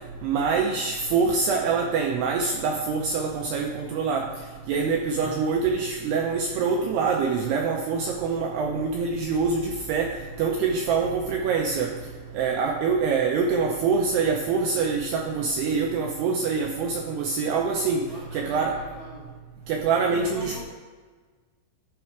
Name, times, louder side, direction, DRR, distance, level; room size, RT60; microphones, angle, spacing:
voice 1, 0.2-4.3 4.7-11.9 12.3-18.1 18.3-18.8 19.7-20.6, right 5 dB, 85° right, 1 dB, 2.3 m, -25 dB
voice 2, 18.0-19.3 20.1-20.6, right 1 dB, 75° left, -6 dB, 0.8 m, -42 dB
11.5 x 5.3 x 4.6 m, 1.4 s
omnidirectional pair, 5.5 m